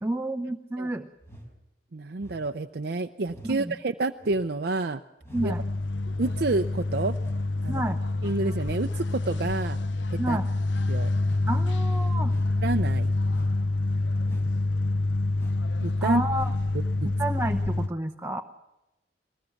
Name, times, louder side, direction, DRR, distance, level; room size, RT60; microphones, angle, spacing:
voice 1, 0.0-1.1 3.5-3.7 5.3-5.6 7.7-8.0 10.2-10.5 11.5-12.3 16.0-16.5 17.0-18.4, right 1 dB, 15° right, 5 dB, 0.9 m, -30 dB
sound 1, 1.2-1.5 2.2-2.5 3.2-3.5 4.2-4.5 5.2-5.5 6.2-6.5 7.2-7.5 8.2-8.5 9.2-9.5 10.2-10.5 11.2-11.5 12.2-12.6 13.3-13.6 14.2-14.6 15.3-15.7 16.3-16.6 17.2-17.3, equal, 15° left, 4.7 m, -47 dB
voice 2, 1.9-5.0 5.4-5.5 6.2-7.2 7.6-7.8 8.2-9.8 10.1-10.4 10.9-11.1 12.6-13.1 15.8-16.2 17.0-17.1, right 3 dB, 60° right, 6 dB, 0.7 m, -29 dB
sound 2, 5.3-17.9, left 2 dB, 90° left, 0.7 m, -27 dB
22.5 x 19.5 x 7.1 m, 0.96 s
head